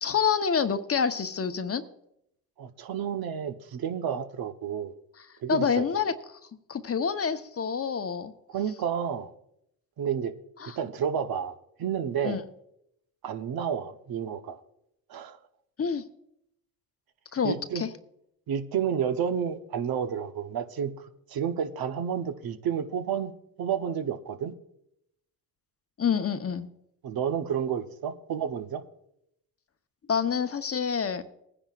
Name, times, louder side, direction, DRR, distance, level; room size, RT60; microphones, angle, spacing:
voice 1, 0.0-1.8 5.5-6.4 6.7-8.3 10.6-10.8 12.2-12.4 15.8-16.0 17.3-17.9 26.0-26.7 30.1-31.2, left 6 dB, 35° left, 9 dB, 1.0 m, -27 dB
voice 2, 2.6-4.9 5.4-5.8 8.5-9.3 10.0-10.3 10.8-12.4 13.2-14.6 15.1-15.4 17.4-17.8 18.5-20.9 21.3-23.3 23.6-24.5 27.0-28.8, right 8 dB, 65° right, 8 dB, 1.0 m, -30 dB
20.0 x 10.0 x 2.5 m, 0.77 s
supercardioid pair, 70°, 39 cm